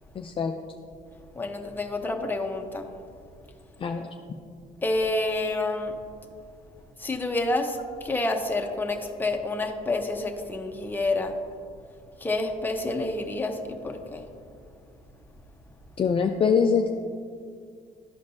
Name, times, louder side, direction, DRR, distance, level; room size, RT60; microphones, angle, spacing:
voice 1, 0.1-0.5 3.8-4.1 16.0-16.9, left 6 dB, 30° left, 4 dB, 0.4 m, -23 dB
voice 2, 1.3-2.9 4.8-5.9 7.0-11.4 12.2-14.3, left 2 dB, 10° left, 3 dB, 0.8 m, -28 dB
12.5 x 5.2 x 2.6 m, 2.3 s
cardioid pair, 110°, 17 cm